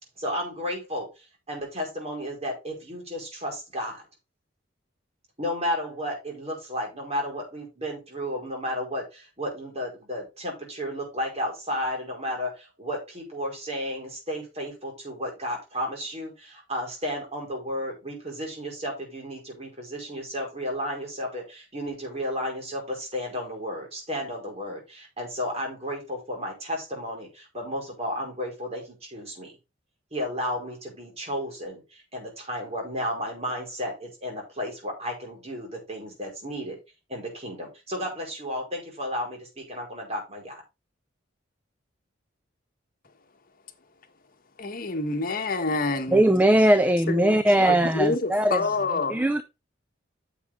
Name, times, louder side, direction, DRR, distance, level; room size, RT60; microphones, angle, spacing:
voice 1, 0.2-4.0 5.4-29.5 30.1-36.8 37.1-40.6, equal, 35° right, 5.0 m, -33 dB
voice 2, 44.6-46.2 47.1-47.4 47.7-49.2, left 3 dB, 50° left, 1.4 m, -27 dB
voice 3, 46.1-47.9 48.3-48.6 49.1-49.4, right 1 dB, 10° right, 0.5 m, -19 dB
9.1 x 7.4 x 3.7 m
head